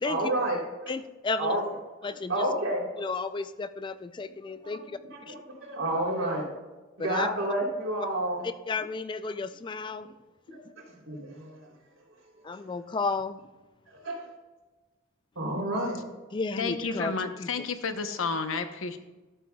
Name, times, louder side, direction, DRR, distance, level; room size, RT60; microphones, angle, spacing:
voice 1, 0.0-0.9 1.4-1.6 2.0-3.0 4.2-4.3 4.6-6.4 7.0-8.4 10.5-10.6 11.1-11.7 13.9-14.3 15.4-16.0, right 1 dB, 85° right, -1 dB, 3.3 m, -30 dB
voice 2, 0.9-1.6 2.0-2.5 3.0-5.0 5.3-5.4 7.0-7.3 8.7-10.1 12.4-13.4 16.3-17.5, left 4 dB, 25° left, 12 dB, 0.3 m, -33 dB
voice 3, 16.6-19.0, left 4 dB, 80° left, 8 dB, 0.9 m, -31 dB
13.0 x 12.5 x 2.3 m, 1.2 s
head